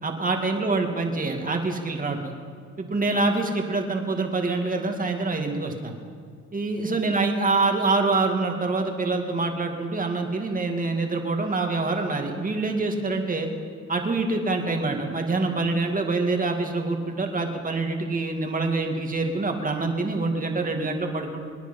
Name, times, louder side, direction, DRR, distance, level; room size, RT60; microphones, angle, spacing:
voice 1, 0.0-2.3 2.8-6.0 6.5-13.5 13.9-21.5, right 3 dB, 25° right, 3 dB, 2.2 m, -25 dB
25.5 x 10.0 x 5.4 m, 2.1 s
cardioid pair, 90°, 30 cm